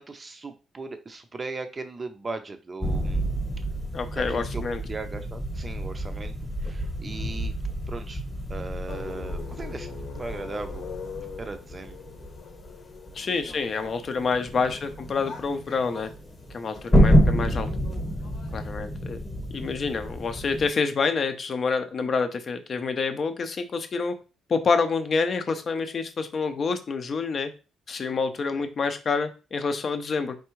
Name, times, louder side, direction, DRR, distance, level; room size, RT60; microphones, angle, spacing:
voice 1, 0.0-3.2 4.1-6.3 6.6-7.5 7.9-8.2 8.5-10.9 11.4-12.1 13.3-13.6 17.1-17.2 28.5-28.7, right 3 dB, 20° right, 8 dB, 0.5 m, -38 dB
sound 1, 2.8-20.7, equal, 10° left, 1.0 m, -28 dB
voice 2, 3.9-4.8 13.1-16.1 16.5-17.7 18.5-19.2 19.5-24.1 24.5-27.5 27.9-30.4, left 4 dB, 35° left, 8 dB, 0.6 m, -27 dB
sound 2, 8.9-18.7, left 5 dB, 65° left, 0.9 m, -43 dB
4.5 x 3.3 x 3.1 m, 0.33 s
cardioid pair, 155°, 0 cm